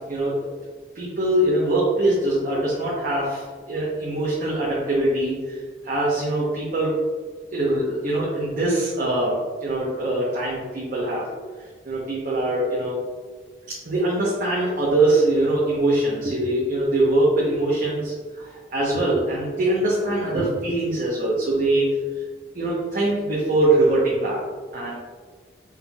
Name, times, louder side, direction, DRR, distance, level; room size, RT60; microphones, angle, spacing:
voice 1, 0.9-7.0 7.5-11.3 11.8-13.0 13.7-21.9 22.5-24.4 24.7-25.0, right 1 dB, 50° right, -6 dB, 0.8 m, -23 dB
4.4 x 3.7 x 2.2 m, 1.5 s
head